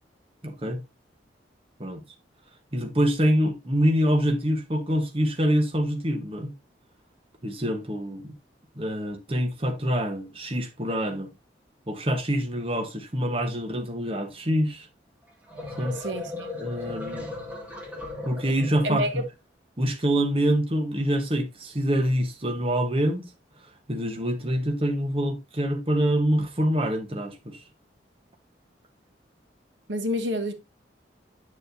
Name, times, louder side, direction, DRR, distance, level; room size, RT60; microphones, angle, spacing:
voice 1, 0.4-0.8 1.8-2.0 2.7-6.5 7.4-8.3 8.8-11.3 11.9-14.9 15.8-16.0 16.6-17.3 18.2-19.1 19.8-23.3 23.9-27.6, equal, 30° right, 1.1 m, -25 dB
sound 1, 15.3-19.2, left 2 dB, 10° right, 2.0 m, -37 dB
voice 2, 15.9-16.5 18.8-19.2 29.9-30.5, equal, 85° right, 1.2 m, -28 dB
8.7 x 6.9 x 2.6 m
head